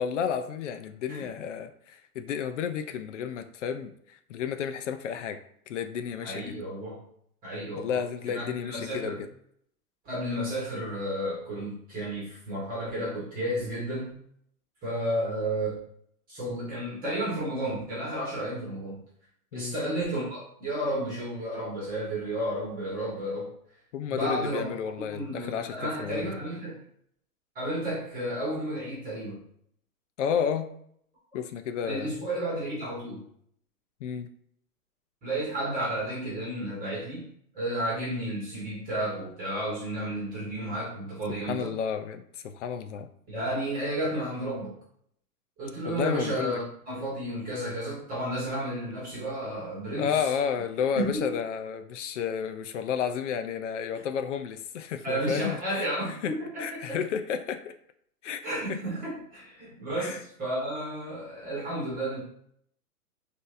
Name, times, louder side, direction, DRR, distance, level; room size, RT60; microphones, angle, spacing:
voice 1, 0.0-5.4 5.7-6.6 7.8-9.3 19.5-19.8 23.9-26.3 30.2-30.7 31.3-32.2 34.0-34.3 41.4-43.1 45.8-46.6 49.9-55.9 56.2-56.3 56.6-57.7 58.2-58.4 58.7-58.8 60.0-60.2, left 7 dB, 50° left, 8 dB, 0.5 m, -31 dB
voice 2, 6.2-7.0 7.4-8.0 8.3-9.2 10.0-14.1 14.8-15.8 16.3-19.0 19.5-23.5 24.1-24.7 25.1-26.8 27.5-29.4 31.8-33.2 35.2-37.3 37.5-41.7 43.3-44.8 45.6-50.3 50.9-51.4 55.0-57.0 58.4-62.2, right 1 dB, 20° right, -5 dB, 1.5 m, -32 dB
6.0 x 2.7 x 2.6 m, 0.68 s
hypercardioid pair, 135°, 46 cm